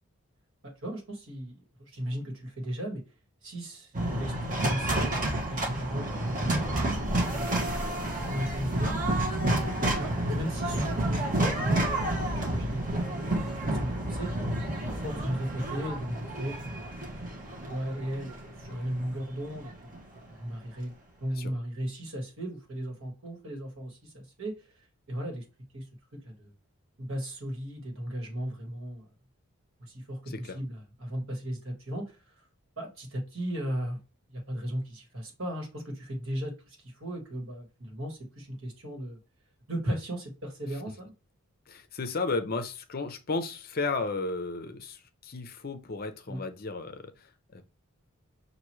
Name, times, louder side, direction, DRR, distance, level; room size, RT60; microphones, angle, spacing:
voice 1, 0.6-3.0 3.4-7.0 7.3-9.0 9.9-14.3 14.8-16.9 17.7-19.7 20.3-20.9 21.2-24.7 25.1-25.5 25.7-25.8 26.1-26.5 27.0-29.1 29.8-32.4 32.8-34.0 34.3-39.2 39.7-41.1 46.3-46.4, equal, 65° right, 1.7 m, -36 dB
sound 1, 3.9-20.2, right 1 dB, 35° right, 1.2 m, -30 dB
voice 2, 9.5-9.8 21.3-21.5 30.3-30.6 41.7-47.6, left 3 dB, 40° left, 0.5 m, -34 dB
5.8 x 2.6 x 3.1 m
head